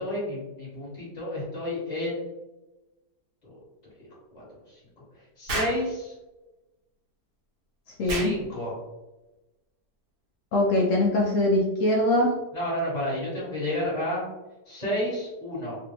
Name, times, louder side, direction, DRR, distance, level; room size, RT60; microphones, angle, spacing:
voice 1, 0.0-2.3 3.4-3.5 4.0-4.1 4.3-4.8 5.4-6.1 8.0-8.8 12.5-14.2 14.7-15.8, left 1 dB, 25° left, -7 dB, 1.5 m, -31 dB
Explosion, 5.5-5.8 8.1-8.4, right 2 dB, 70° right, 1.4 m, -29 dB
voice 2, 8.0-8.3 10.5-12.3, left 1 dB, 65° left, -1 dB, 0.9 m, -22 dB
3.4 x 2.5 x 2.9 m, 1.0 s
omnidirectional pair, 1.8 m